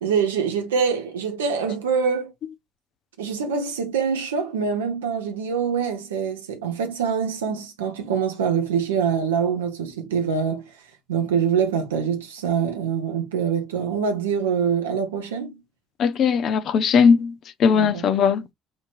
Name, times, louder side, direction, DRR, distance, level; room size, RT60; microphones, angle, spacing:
voice 1, 0.0-2.3 3.2-10.6 11.1-15.6 17.7-18.0, right 6 dB, 80° right, 1.0 m, -24 dB
voice 2, 16.0-18.5, left 6 dB, 50° left, 0.8 m, -19 dB
6.4 x 3.0 x 2.4 m
figure-of-eight pair, 55°, 0 cm